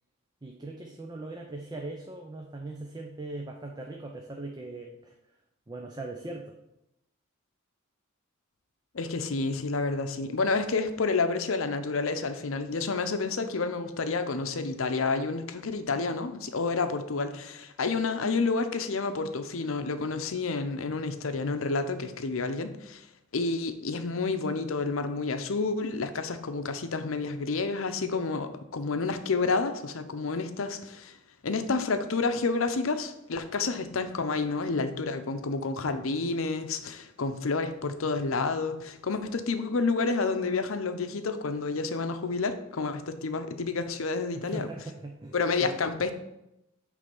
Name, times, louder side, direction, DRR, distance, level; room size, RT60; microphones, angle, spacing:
voice 1, 0.4-5.1 5.7-6.6 44.3-45.4 45.6-46.1, right 2 dB, 20° right, 2 dB, 0.5 m, -40 dB
voice 2, 8.9-23.0 23.3-31.2 31.4-44.7 45.3-46.1, left 4 dB, 70° left, 9 dB, 0.7 m, -29 dB
8.3 x 3.4 x 5.4 m, 0.86 s
head